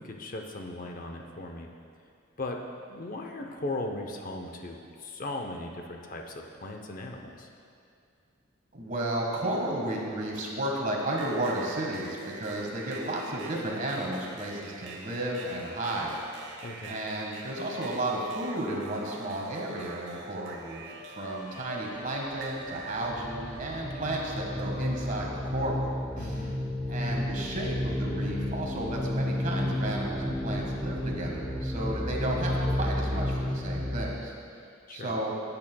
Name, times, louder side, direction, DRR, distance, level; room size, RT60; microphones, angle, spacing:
voice 1, 0.0-1.7 2.4-2.6 2.9-7.5 16.6-17.1 26.2-26.6 34.9-35.2, left 2 dB, 40° left, 2 dB, 0.7 m, -38 dB
voice 2, 8.7-16.2 16.8-26.5 26.9-34.3 34.9-35.3, right 1 dB, 40° right, -1 dB, 1.5 m, -33 dB
sound 1, 11.1-23.2 23.9-25.1, right 4 dB, 60° right, 0.9 m, -45 dB
sound 2, 20.6-26.5, right 2 dB, 20° left, 1.4 m, -46 dB
sound 3, 22.8-34.0, left 1 dB, 5° left, 0.5 m, -32 dB
17.0 x 8.8 x 2.3 m, 2.4 s
head